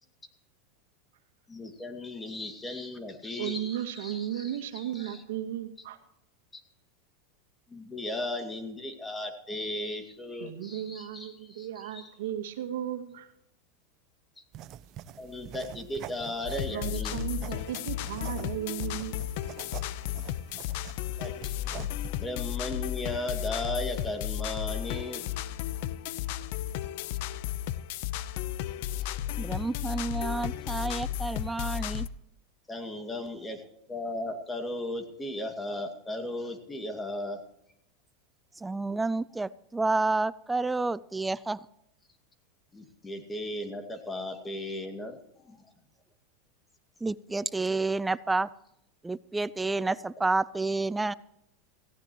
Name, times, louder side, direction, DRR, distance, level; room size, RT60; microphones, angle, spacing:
voice 1, 1.5-5.2 6.5-6.6 7.7-12.1 15.2-17.3 21.2-21.5 22.2-25.3 32.7-37.4 42.7-45.7 49.9-50.0, left 1 dB, 15° left, 6 dB, 2.2 m, -36 dB
voice 2, 3.4-6.0 10.4-13.3 16.6-19.2, right 11 dB, 80° right, 8 dB, 1.9 m, -35 dB
sound 1, 14.5-22.1, right 12 dB, 40° right, 0.7 m, -46 dB
sound 2, 16.5-32.1, left 12 dB, 65° left, 0.8 m, -34 dB
voice 3, 29.4-32.1 38.6-41.6 47.0-48.5 49.0-51.1, right 3 dB, 10° right, 19 dB, 0.5 m, -29 dB
18.0 x 16.0 x 3.1 m, 0.78 s
supercardioid pair, 135°, 0 cm